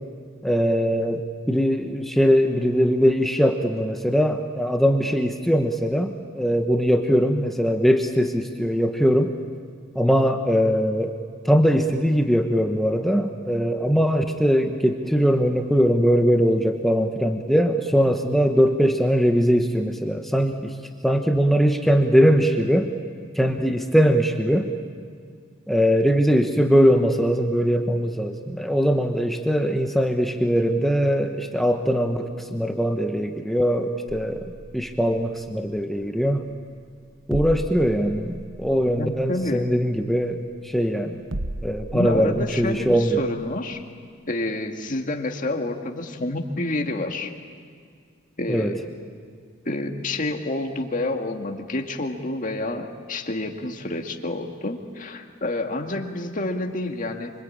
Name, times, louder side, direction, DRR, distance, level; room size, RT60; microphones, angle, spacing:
voice 1, 0.4-9.3 9.9-11.2 11.4-20.7 21.0-22.9 23.3-24.7 25.7-36.5 37.3-41.2 41.6-43.2 48.5-48.7, equal, ahead, 4 dB, 1.1 m, -21 dB
sound 1, 37.1-43.7, right 1 dB, 70° right, 1.1 m, -38 dB
voice 2, 39.0-39.7 41.9-43.8 44.3-47.3 48.4-48.8 49.7-57.3, left 2 dB, 40° left, 3 dB, 2.0 m, -28 dB
26.0 x 25.0 x 8.8 m, 2.1 s
head